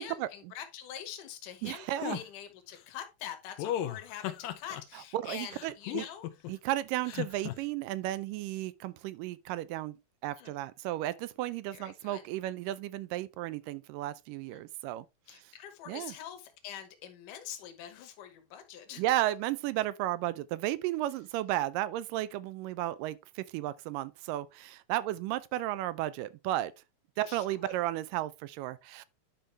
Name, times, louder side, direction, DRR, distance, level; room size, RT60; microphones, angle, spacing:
voice 1, 0.0-1.9 2.1-6.6 10.4-10.5 11.7-12.2 14.5-14.6 15.3-19.0 21.0-21.1 27.2-27.7, left 10 dB, 70° left, 2.7 m, -45 dB
voice 2, 1.6-2.2 4.9-6.0 6.5-9.9 10.2-15.1 15.9-16.1 19.0-26.7 27.2-29.0, right 14 dB, 85° right, 2.1 m, -34 dB
sound 1, 2.0-2.2 3.6-4.8 5.5-6.5 7.0-7.5, left 12 dB, 85° left, 2.5 m, -35 dB
10.0 x 5.4 x 3.3 m
omnidirectional pair, 3.9 m